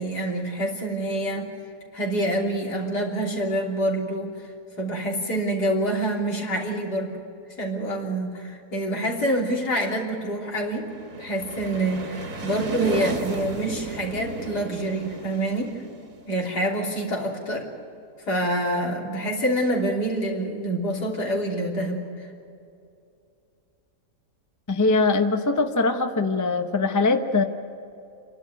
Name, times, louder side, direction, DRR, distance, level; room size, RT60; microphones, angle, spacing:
voice 1, 0.0-1.5 1.9-4.3 4.8-7.1 7.6-10.9 11.2-15.8 16.3-17.7 18.3-22.3, right 1 dB, 70° left, -1 dB, 3.8 m, -26 dB
sound 1, 10.5-17.2, right 3 dB, 55° right, 2.0 m, -35 dB
voice 2, 24.7-27.4, left 3 dB, 15° left, 6 dB, 0.8 m, -22 dB
28.5 x 12.0 x 9.5 m, 2.6 s
omnidirectional pair, 1.8 m